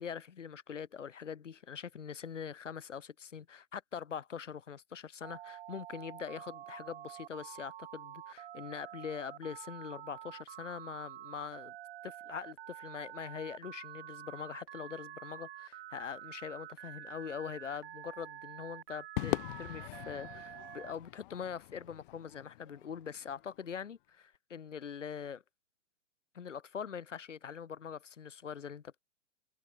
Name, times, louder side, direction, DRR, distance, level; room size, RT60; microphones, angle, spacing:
voice 1, 0.0-11.7 12.0-25.4 26.3-29.0, left 7 dB, 80° left, 1.2 m, -43 dB
Telephone, 5.2-20.9, right 13 dB, 55° right, 0.7 m, -48 dB
Crowd / Fireworks, 19.2-23.6, left 17 dB, 45° left, 1.8 m, -41 dB
figure-of-eight pair, 115°, 37 cm